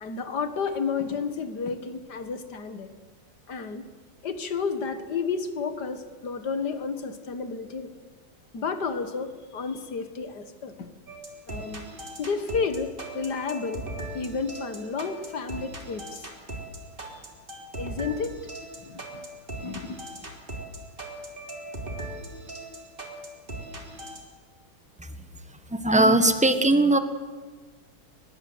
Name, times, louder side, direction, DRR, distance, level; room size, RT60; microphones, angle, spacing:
voice 1, 0.0-2.9 3.5-3.8 4.2-7.9 8.5-10.9 11.5-11.9 12.2-13.9 14.1-16.3 17.7-18.4 18.8-19.0 19.6-20.0, left 5 dB, 50° left, 10 dB, 2.0 m, -31 dB
sound 1, 11.1-24.2, right 1 dB, 25° right, 3.4 m, -39 dB
voice 2, 25.7-27.0, right 2 dB, 5° right, 9 dB, 0.9 m, -19 dB
23.0 x 21.5 x 8.0 m, 1.4 s
omnidirectional pair, 2.3 m